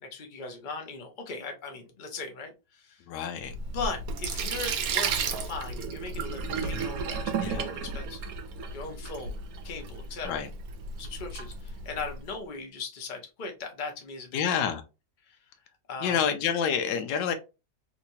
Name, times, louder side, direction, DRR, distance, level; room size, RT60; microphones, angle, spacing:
voice 1, 0.0-3.1 3.7-8.3 8.7-10.4 11.0-14.4 15.2-15.5 15.9-16.2, left 4 dB, 40° left, 0.7 m, -39 dB
voice 2, 3.1-3.5 7.4-7.6 10.2-10.5 14.3-14.8 16.0-17.3, left 7 dB, 85° left, 1.3 m, -28 dB
Sink (filling or washing), 3.4-12.2, right 5 dB, 65° right, 1.0 m, -33 dB
3.3 x 2.9 x 2.7 m
omnidirectional pair, 1.9 m